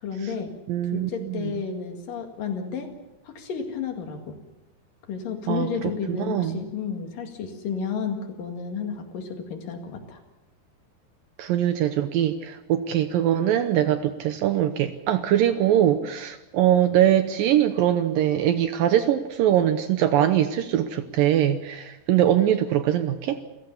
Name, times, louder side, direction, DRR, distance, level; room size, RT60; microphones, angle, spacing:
voice 1, 0.0-0.5 0.9-2.9 3.3-4.4 5.1-10.2, left 6 dB, 60° left, 4 dB, 3.6 m, -32 dB
voice 2, 0.7-1.5 5.5-5.7 6.1-6.6 11.4-23.4, right 11 dB, 75° right, 10 dB, 2.3 m, -22 dB
28.5 x 16.0 x 7.1 m, 0.99 s
omnidirectional pair, 4.7 m